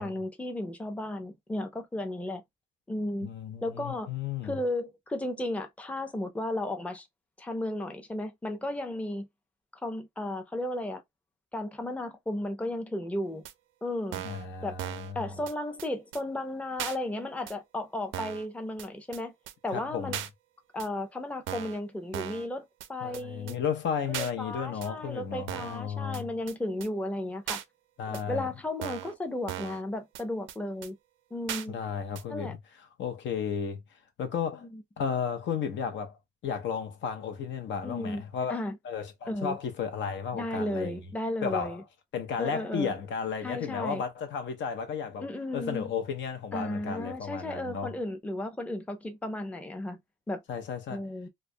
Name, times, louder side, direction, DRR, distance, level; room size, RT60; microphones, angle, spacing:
voice 1, 0.0-2.4 2.9-3.3 3.6-4.1 4.4-7.1 7.4-9.3 9.8-11.0 11.5-13.4 13.8-14.2 14.6-14.8 15.1-19.3 19.6-20.2 20.7-23.6 24.1-27.6 28.1-31.0 31.3-31.8 32.3-32.5 34.6-34.8 37.8-38.2 38.5-38.8 39.3-39.6 40.3-41.8 42.4-42.9 43.4-44.0 45.2-45.9 46.5-50.0 50.3-50.4 50.9-51.3, left 1 dB, 5° left, 0.5 m, -34 dB
voice 2, 3.2-4.6 14.2-15.4 19.7-20.2 23.0-26.3 28.0-28.5 31.7-32.6 33.0-33.8 34.2-34.7 35.0-36.2 36.4-38.6 38.8-41.0 41.4-41.8 42.1-45.3 45.5-47.9 50.5-51.0, left 6 dB, 70° left, 0.7 m, -33 dB
sound 1, 13.4-13.5 14.1-14.4 14.8-15.1 15.5-15.6 15.8-15.9 16.1-16.2 16.8-17.0 17.5-17.6 18.1-18.4 18.8-18.9 19.1-19.2 19.5-19.6 20.1-20.3 20.8-20.9 21.5-21.8 22.1-22.5 22.8-22.9 23.1-23.2 23.5-23.6 24.1-24.3 24.8-24.9 25.5-25.8 26.1-26.2 26.5-26.6 26.8-26.9 27.5-27.6 28.1-28.2 28.8-29.1 29.5-29.8 30.1-30.2 30.5-30.6 30.8-30.9 31.5-31.6 32.1-32.2, right 11 dB, 80° right, 0.4 m, -37 dB
2.3 x 2.1 x 2.6 m
cardioid pair, 90°, 20 cm